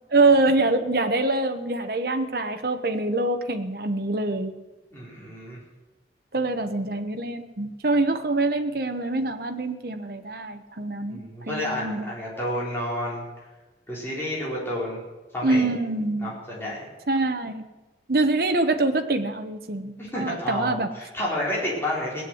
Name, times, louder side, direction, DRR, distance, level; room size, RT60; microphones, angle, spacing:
voice 1, 0.1-4.5 6.3-11.2 11.5-12.1 15.4-16.4 17.1-17.7 18.1-20.9, right 2 dB, 55° right, 6 dB, 1.0 m, -24 dB
voice 2, 4.9-5.6 11.1-13.2 13.9-15.0 15.3-15.7 16.2-16.9 20.0-22.2, left 1 dB, 15° left, -6 dB, 4.5 m, -30 dB
18.0 x 8.0 x 9.4 m, 1.2 s
head